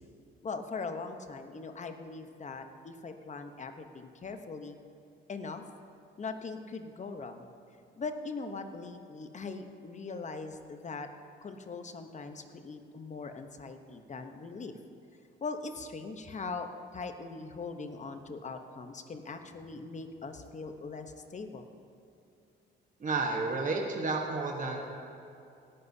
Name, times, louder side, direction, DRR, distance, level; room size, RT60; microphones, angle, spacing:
voice 1, 0.4-4.8 5.3-5.6 6.2-7.5 8.0-11.1 11.4-14.7 15.4-21.6, left 4 dB, 35° left, 7 dB, 0.9 m, -41 dB
voice 2, 23.0-24.8, right 3 dB, 40° right, 1 dB, 1.2 m, -31 dB
18.0 x 11.0 x 2.8 m, 2.7 s
cardioid pair, 90°, 20 cm